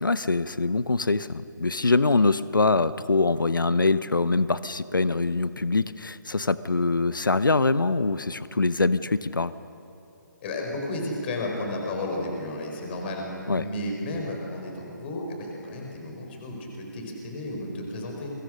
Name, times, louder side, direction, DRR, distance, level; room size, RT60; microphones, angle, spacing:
voice 1, 0.0-9.5 13.5-13.6, left 3 dB, 80° left, 15 dB, 0.9 m, -24 dB
voice 2, 10.4-13.2 13.5-18.3, left 1 dB, 35° left, 1 dB, 4.9 m, -33 dB
29.5 x 24.0 x 6.4 m, 2.9 s
figure-of-eight pair, 145°, 11 cm